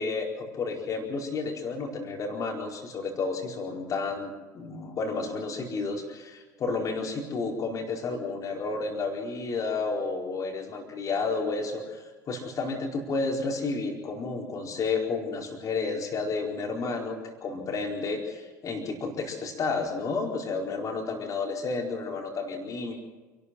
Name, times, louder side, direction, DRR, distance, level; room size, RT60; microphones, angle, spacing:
voice 1, 0.0-22.9, left 4 dB, 35° left, 2 dB, 4.5 m, -31 dB
28.0 x 12.5 x 7.8 m, 1.3 s
figure-of-eight pair, 70°, 10 cm